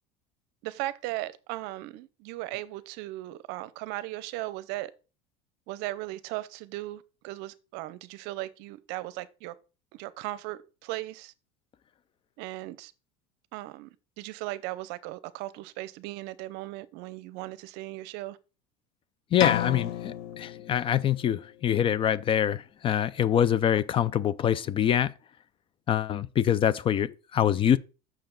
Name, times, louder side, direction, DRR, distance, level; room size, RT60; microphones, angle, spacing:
voice 1, 0.6-4.9 5.7-9.5 9.9-11.3 12.4-12.9 13.5-13.9 14.2-18.4, right 17 dB, 65° right, 0.6 m, -37 dB
voice 2, 19.3-25.1 25.9-27.8, left 10 dB, 30° left, 0.3 m, -25 dB
sound 1, 19.4-21.3, left 11 dB, 70° left, 0.8 m, -31 dB
6.8 x 6.1 x 3.8 m
supercardioid pair, 130°, 19 cm